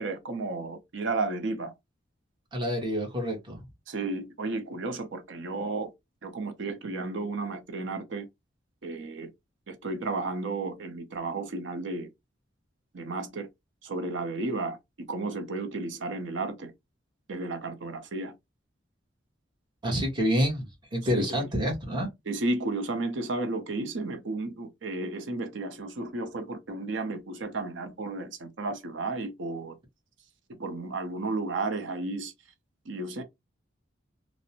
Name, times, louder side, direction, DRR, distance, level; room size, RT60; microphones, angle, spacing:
voice 1, 0.0-1.7 3.9-5.9 6.2-8.3 8.8-9.3 9.7-12.1 12.9-13.5 13.8-14.8 15.1-16.7 17.3-18.3 21.2-21.5 22.3-29.8 30.6-32.3 32.9-33.2, right 3 dB, 75° right, 0.6 m, -33 dB
voice 2, 2.5-3.6 19.8-22.1, equal, 25° right, 1.0 m, -28 dB
2.5 x 2.0 x 2.7 m
head